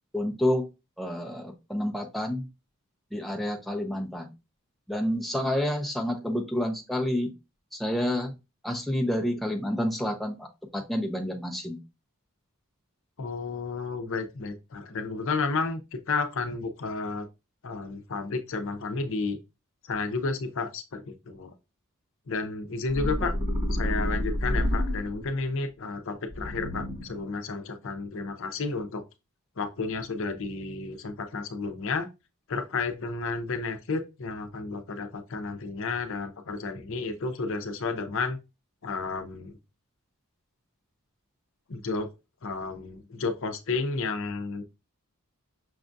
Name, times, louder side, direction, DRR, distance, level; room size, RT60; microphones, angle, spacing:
voice 1, 0.1-0.7 1.0-2.5 3.1-4.3 4.9-7.3 7.7-8.3 8.6-10.5 10.7-11.8 23.2-23.3, left 1 dB, ahead, 0.5 m, -29 dB
voice 2, 13.2-17.3 17.6-19.4 19.9-21.5 22.3-23.3 23.8-29.0 29.6-32.1 32.5-38.4 38.8-39.6 41.7-42.1 42.4-44.6, left 4 dB, 60° left, 0.6 m, -32 dB
sound 1, 22.9-25.4 26.3-27.3, left 1 dB, 50° right, 1.3 m, -29 dB
5.9 x 2.3 x 2.6 m
head